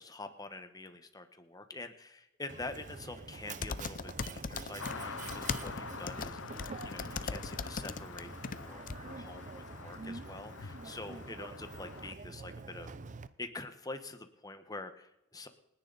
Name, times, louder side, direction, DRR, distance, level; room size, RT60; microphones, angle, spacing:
voice 1, 0.0-12.9 13.4-15.5, left 2 dB, 20° left, 8 dB, 1.3 m, -46 dB
Mechanisms, 2.5-13.3, right 4 dB, 40° right, 0.7 m, -46 dB
sound 1, 3.6-4.9 5.2-8.6 8.9-9.0, left 5 dB, 45° left, 0.6 m, -38 dB
sound 2, 4.8-12.1, left 5 dB, 75° left, 0.7 m, -47 dB
28.5 x 10.5 x 4.1 m, 0.88 s
head